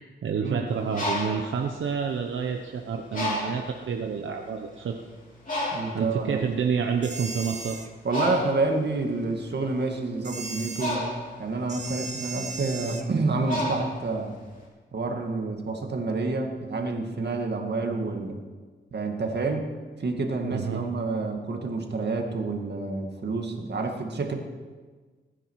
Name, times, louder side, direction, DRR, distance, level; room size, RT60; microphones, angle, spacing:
voice 1, 0.0-5.0 5.5-5.7 5.9-7.8 20.5-20.8, right 6 dB, 90° right, 3 dB, 1.0 m, -29 dB
Bird, 0.7-2.6 3.1-3.8 4.5-4.6 4.9-14.6, left 1 dB, 45° left, 4.3 m, -33 dB
voice 2, 5.7-6.5 8.0-11.1 11.4-14.3 14.9-18.4 18.9-19.7 20.0-24.4, right 3 dB, 60° right, 3 dB, 2.1 m, -28 dB
sound 1, 7.0-7.9 10.2-11.0 11.7-13.1, right 3 dB, 35° right, 1.3 m, -37 dB
20.5 x 10.0 x 4.7 m, 1.4 s
wide cardioid pair, 85°, 20 cm